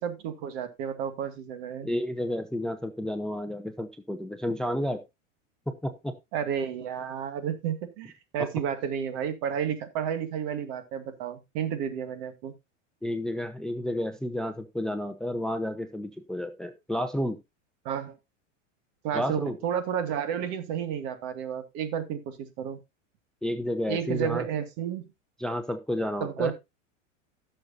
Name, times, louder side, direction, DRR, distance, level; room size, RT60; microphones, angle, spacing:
voice 1, 0.0-1.9 6.3-12.5 17.8-18.2 19.0-22.8 23.9-25.1 26.2-26.5, right 8 dB, 55° right, 9 dB, 2.3 m, -31 dB
voice 2, 1.8-5.0 5.7-6.1 8.4-8.5 13.0-17.4 19.1-19.5 23.4-24.5 25.4-26.5, left 1 dB, ahead, 9 dB, 0.7 m, -31 dB
16.0 x 6.7 x 2.8 m, 0.22 s
hypercardioid pair, 120°, 38 cm